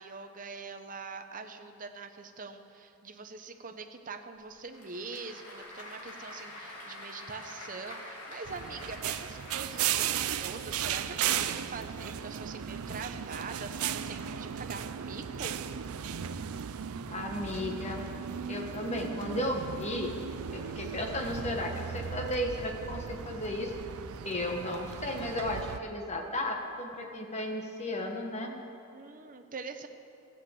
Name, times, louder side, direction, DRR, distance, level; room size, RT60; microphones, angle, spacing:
voice 1, 0.0-15.5 28.9-29.9, right 4 dB, 40° right, 7 dB, 0.8 m, -43 dB
Applause / Crowd, 4.4-11.1, left 1 dB, 80° left, 2.7 m, -47 dB
sound 1, 8.4-25.8, right 8 dB, 75° right, 0.5 m, -36 dB
voice 2, 17.1-18.1 18.5-20.1 20.5-23.7 24.2-28.5, left 1 dB, 30° left, 2 dB, 1.4 m, -34 dB
14.5 x 7.9 x 7.8 m, 2.7 s
head